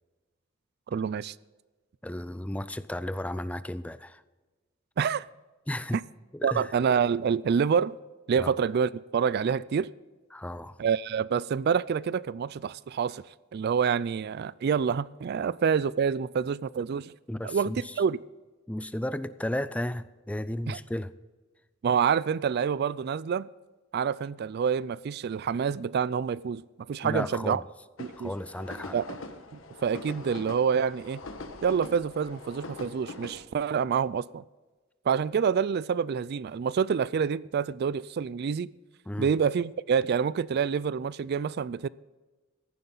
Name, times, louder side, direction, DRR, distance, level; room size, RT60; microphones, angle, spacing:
voice 1, 0.9-1.4 5.0-5.3 6.4-8.0 8.3-9.9 10.8-13.2 13.5-17.1 17.4-18.2 20.7-20.8 21.8-23.5 23.9-26.6 26.9-27.6 28.0-28.3 28.9-29.2 29.5-31.2 31.6-34.4 35.1-38.7 39.2-41.9, right 6 dB, 55° right, 0.3 m, -27 dB
voice 2, 2.0-4.2 5.7-6.0 6.3-6.7 8.4-8.5 10.3-10.8 17.3-17.9 18.7-21.1 27.0-27.6 28.2-29.0 39.1-39.3, left 1 dB, 5° left, 0.4 m, -34 dB
sound 1, 28.0-33.4, left 2 dB, 85° left, 1.4 m, -43 dB
15.0 x 11.0 x 4.0 m
head